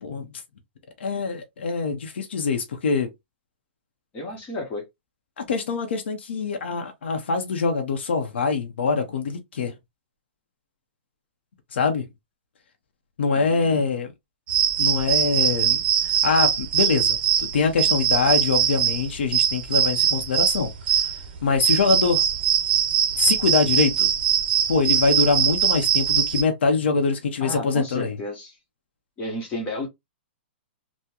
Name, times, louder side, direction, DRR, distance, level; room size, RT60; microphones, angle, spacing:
voice 1, 1.0-3.1 5.4-9.7 11.7-12.1 13.2-14.1 14.8-20.7 21.4-22.2 23.2-24.1 24.7-28.2, left 4 dB, 85° left, 0.7 m, -24 dB
voice 2, 4.1-4.8 13.3-13.8 27.4-28.6 29.2-29.9, left 1 dB, 20° left, 0.9 m, -32 dB
sound 1, 14.5-26.4, right 9 dB, 55° right, 0.6 m, -22 dB
3.5 x 2.1 x 2.8 m
hypercardioid pair, 160°, 6 cm